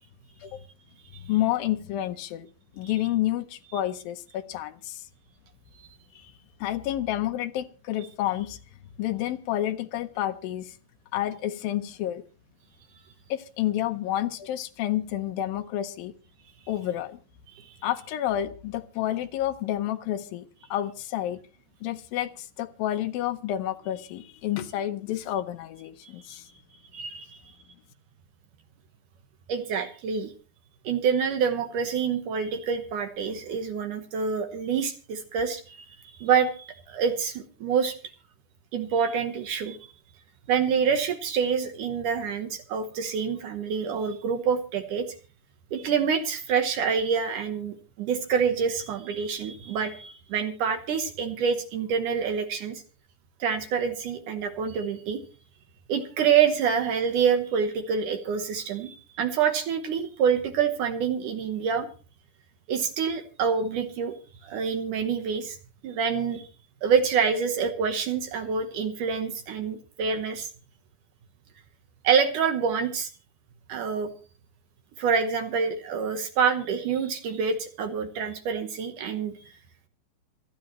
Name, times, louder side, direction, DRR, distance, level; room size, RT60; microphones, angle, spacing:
voice 1, 1.2-2.5 2.8-5.0 6.1-6.3 6.6-8.6 9.0-10.7 11.1-12.2 13.3-16.1 16.7-17.2 17.8-21.4 21.8-26.5, left 13 dB, 85° left, 7 dB, 2.0 m, -29 dB
voice 2, 26.9-27.4 29.5-30.3 30.8-35.8 36.0-38.0 38.7-39.8 40.5-45.1 45.7-52.8 53.4-55.2 55.9-61.9 62.7-64.2 64.4-65.6 65.8-66.5 66.8-70.5 72.0-73.1 73.7-74.1 75.0-79.3, right 6 dB, 70° right, 6 dB, 2.0 m, -26 dB
26.5 x 9.5 x 3.1 m, 0.36 s
omnidirectional pair, 5.2 m